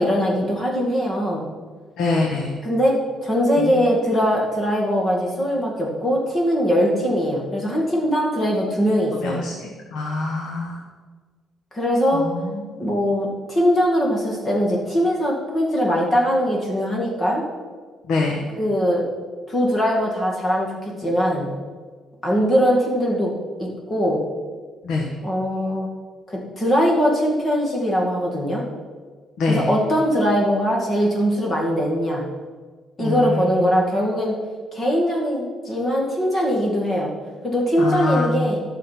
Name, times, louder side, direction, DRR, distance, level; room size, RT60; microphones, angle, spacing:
voice 1, 0.0-1.5 2.6-3.0 3.2-9.4 11.7-12.2 12.8-17.4 18.6-19.0 19.5-21.5 22.2-23.3 23.6-24.2 25.2-25.9 26.3-28.6 29.5-32.3 33.0-34.4 34.7-37.1 37.4-38.6, equal, 25° left, -2 dB, 2.3 m, -21 dB
voice 2, 2.0-2.5 3.6-3.9 9.2-10.8 12.1-12.8 18.1-18.4 24.8-25.1 29.4-29.7 33.0-33.9 37.8-38.5, left 3 dB, 75° left, -1 dB, 1.5 m, -25 dB
11.5 x 6.5 x 5.9 m, 1.5 s
cardioid pair, 170°, 0 cm